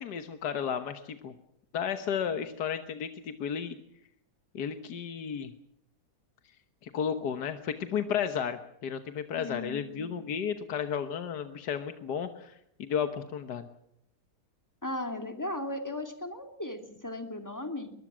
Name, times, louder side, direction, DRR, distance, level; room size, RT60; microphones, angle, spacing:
voice 1, 0.0-1.3 1.7-3.8 4.5-5.5 6.8-13.7, left 7 dB, 80° left, 8 dB, 1.8 m, -33 dB
voice 2, 9.4-10.2 14.8-17.9, left 1 dB, 10° left, 5 dB, 2.6 m, -37 dB
23.5 x 21.0 x 6.2 m, 0.76 s
omnidirectional pair, 1.7 m